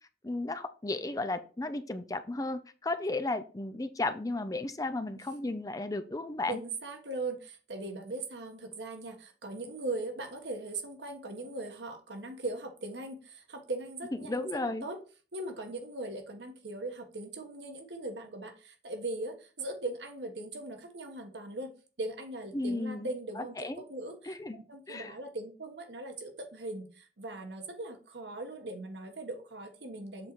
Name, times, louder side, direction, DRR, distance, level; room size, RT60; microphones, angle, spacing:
voice 1, 0.2-6.6 14.1-14.9 22.5-23.1 23.4-23.8 24.3-24.6 24.9-25.1, left 2 dB, 20° left, 10 dB, 0.5 m, -34 dB
voice 2, 6.5-15.0 15.3-21.7 22.0-30.3, right 2 dB, 90° right, 5 dB, 1.3 m, -40 dB
7.7 x 4.1 x 4.6 m, 0.36 s
head